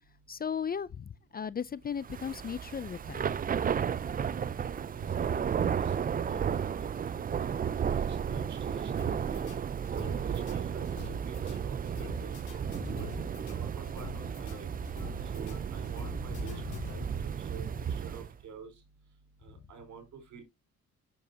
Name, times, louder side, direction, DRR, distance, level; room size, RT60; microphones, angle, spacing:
voice 1, 0.3-3.3 12.7-13.0 16.4-17.0, left 7 dB, 30° left, 0.5 m, -37 dB
Thunder / Rain, 2.0-18.3, right 7 dB, 30° right, 0.4 m, -33 dB
voice 2, 4.9-6.7 7.4-9.5 9.9-12.4 13.0-13.1 13.4-14.7 15.3-17.0 17.4-18.7 19.4-20.4, right 6 dB, 70° right, 4.6 m, -48 dB
sound 1, 9.0-17.3, left 7 dB, 85° left, 2.7 m, -49 dB
8.4 x 7.1 x 2.8 m
cardioid pair, 90°, 30 cm